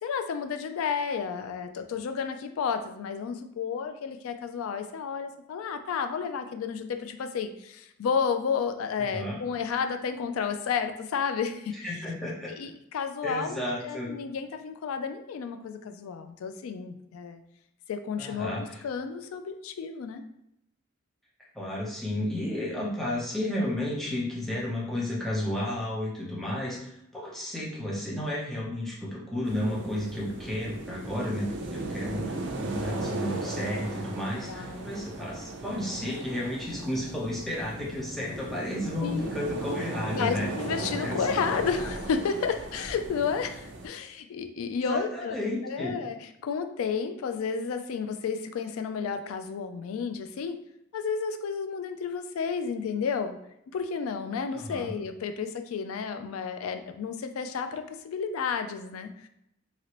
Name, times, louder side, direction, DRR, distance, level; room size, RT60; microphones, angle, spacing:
voice 1, 0.0-11.8 12.4-17.4 17.9-20.2 34.5-34.9 39.0-39.4 40.1-46.2 46.4-50.6 50.9-53.4 53.7-59.3, left 6 dB, 90° left, 8 dB, 0.3 m, -32 dB
voice 2, 11.7-12.5 13.2-14.1 18.2-18.8 21.5-40.5 41.0-41.3 44.8-46.0 54.5-54.9, left 1 dB, ahead, -5 dB, 0.7 m, -32 dB
sound 1, 29.4-43.9, right 2 dB, 60° right, 0.5 m, -36 dB
2.9 x 2.9 x 2.9 m, 0.79 s
head